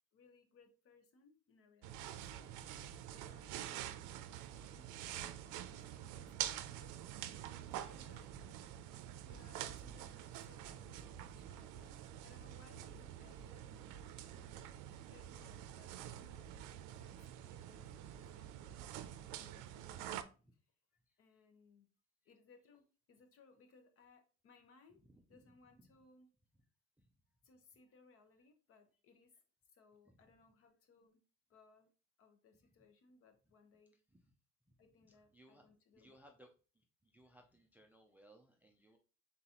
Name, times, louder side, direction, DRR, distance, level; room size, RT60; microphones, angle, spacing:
voice 1, 0.1-2.6 3.1-6.3 6.7-6.9 7.3-8.6 9.2-12.0 12.2-13.8 14.3-14.8 15.1-16.5 17.0-20.2 20.5-20.6 21.2-21.9 22.2-25.0 25.3-26.3 27.4-29.3 29.7-31.2 31.5-31.9 32.2-34.0 34.8-36.1, left 4 dB, 50° left, 6 dB, 0.9 m, -67 dB
sound 1, 1.8-20.2, right 11 dB, 90° right, 0.5 m, -47 dB
voice 2, 25.0-25.9 27.0-27.1 30.1-30.3 34.1-34.3 35.0-35.6 36.0-39.0, right 1 dB, 5° right, 2 dB, 0.3 m, -65 dB
4.0 x 3.8 x 2.8 m, 0.35 s
cardioid pair, 150°, 30 cm